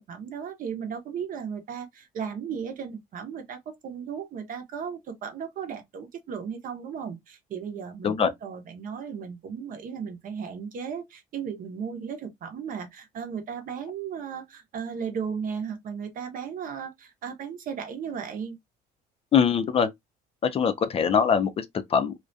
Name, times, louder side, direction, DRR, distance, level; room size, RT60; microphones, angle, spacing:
voice 1, 0.0-18.6, right 7 dB, 55° right, 0.7 m, -35 dB
voice 2, 19.3-19.9 20.4-22.1, left 7 dB, 35° left, 0.3 m, -23 dB
2.4 x 2.1 x 2.5 m
cardioid pair, 110°, 17 cm